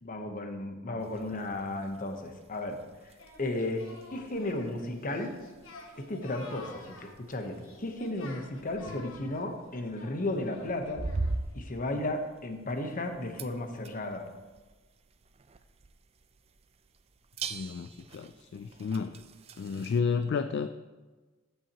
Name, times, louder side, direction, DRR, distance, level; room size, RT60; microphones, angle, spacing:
voice 1, 0.0-3.1 3.4-5.4 6.0-11.0 11.5-14.3, left 2 dB, 45° left, 5 dB, 0.9 m, -34 dB
sound 1, 1.0-20.0, right 3 dB, 30° right, 0.4 m, -44 dB
Singing, 3.2-11.5, left 3 dB, 90° left, 1.3 m, -51 dB
voice 2, 17.5-19.2 19.6-20.8, left 5 dB, 60° left, 10 dB, 0.3 m, -32 dB
14.0 x 5.6 x 2.9 m, 1.3 s
head